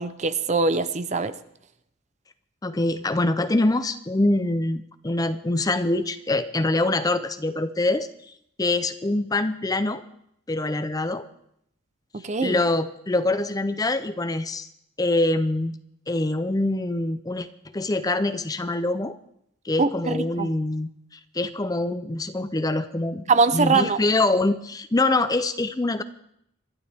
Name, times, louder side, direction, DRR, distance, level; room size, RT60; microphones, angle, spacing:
voice 1, 0.0-1.3 12.1-12.6 19.8-20.5 23.3-24.0, right 4 dB, 35° right, 13 dB, 0.6 m, -22 dB
voice 2, 2.6-8.1 8.6-10.0 10.5-11.2 12.4-14.7 15.0-15.7 16.1-17.5 17.7-19.2 19.6-20.9 21.3-23.2 23.5-26.0, left 2 dB, 15° left, 12 dB, 0.5 m, -24 dB
25.5 x 11.5 x 3.5 m, 0.73 s
head